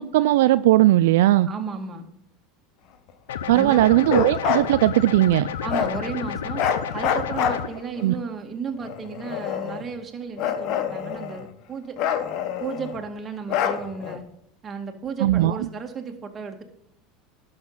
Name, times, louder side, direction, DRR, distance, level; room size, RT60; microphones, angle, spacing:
voice 1, 0.0-1.5 3.5-5.5 8.0-8.1 15.2-15.6, right 15 dB, 80° right, 14 dB, 0.3 m, -18 dB
voice 2, 1.5-2.1 3.5-3.9 5.6-6.6 6.9-12.0 12.6-14.2 14.6-16.6, right 5 dB, 30° right, 4 dB, 2.0 m, -33 dB
sound 1, 3.3-7.7, left 8 dB, 85° left, 0.7 m, -31 dB
Bark, 4.0-4.7 5.7-6.0 6.6-8.0 8.8-9.9 10.4-11.5 12.0-13.0 13.5-14.2, left 8 dB, 60° left, 1.2 m, -26 dB
11.5 x 6.6 x 5.6 m, 0.75 s
supercardioid pair, 100°, 0 cm